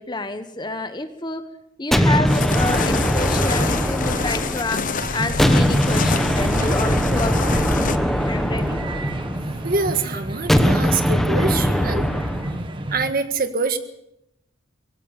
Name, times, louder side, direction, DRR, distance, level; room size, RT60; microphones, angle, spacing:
voice 1, 0.0-1.5 1.8-7.7 8.2-8.8, left 2 dB, 20° left, 9 dB, 1.3 m, -28 dB
sound 1, 1.9-4.9 5.4-9.6 10.5-12.6, equal, ahead, 1.1 m, -21 dB
sound 2, 2.3-8.0, left 4 dB, 40° left, 1.0 m, -27 dB
sound 3, 5.0-13.1, right 1 dB, 25° right, 1.7 m, -30 dB
voice 2, 9.6-12.0 12.9-13.8, right 4 dB, 45° right, 9 dB, 1.6 m, -24 dB
22.5 x 16.5 x 7.2 m, 0.81 s
head